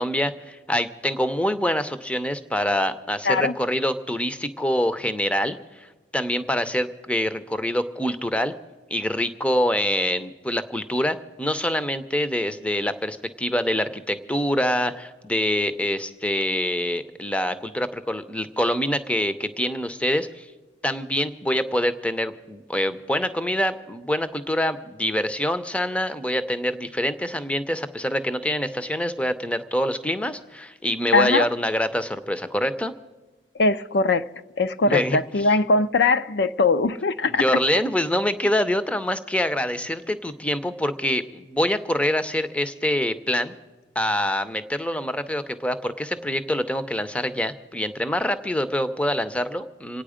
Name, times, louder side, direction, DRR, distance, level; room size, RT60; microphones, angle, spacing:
voice 1, 0.0-5.6 6.1-8.5 8.9-20.5 20.8-32.9 34.8-35.5 37.3-43.5 44.0-50.0, left 1 dB, 5° left, 0.6 m, -25 dB
voice 2, 31.1-31.5 33.6-34.3 34.6-37.6, left 3 dB, 65° left, 0.5 m, -21 dB
27.5 x 9.1 x 5.0 m
head